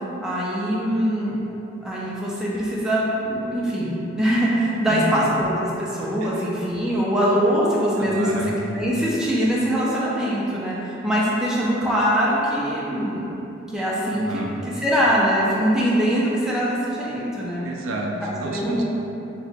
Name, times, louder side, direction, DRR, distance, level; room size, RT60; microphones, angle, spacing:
voice 1, 0.2-1.4 1.8-8.4 8.7-13.3 13.7-14.4 14.8-17.7 18.2-18.8, equal, 5° right, -7 dB, 0.4 m, -22 dB
voice 2, 4.9-5.3 6.2-6.5 8.0-8.6 14.1-14.6 17.6-18.8, right 2 dB, 70° right, 0 dB, 0.4 m, -30 dB
2.9 x 2.2 x 4.1 m, 2.9 s
head